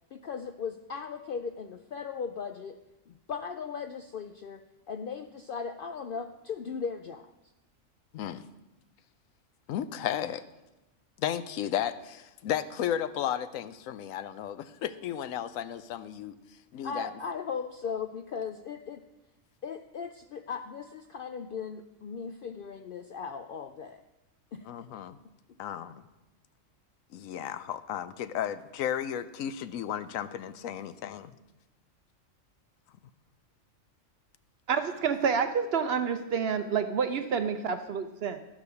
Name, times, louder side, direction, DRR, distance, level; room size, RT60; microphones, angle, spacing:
voice 1, 0.1-2.8 3.1-4.6 4.9-7.3 16.8-19.0 19.6-24.0 24.5-24.7, left 6 dB, 65° left, 7 dB, 0.5 m, -37 dB
voice 2, 8.1-8.4 9.7-10.4 11.2-17.1 24.7-25.2 25.6-26.0 27.1-31.4, left 10 dB, 80° left, 13 dB, 1.0 m, -34 dB
voice 3, 34.7-38.4, right 6 dB, 60° right, 9 dB, 0.7 m, -28 dB
11.5 x 5.0 x 6.9 m, 1.0 s
omnidirectional pair, 1.4 m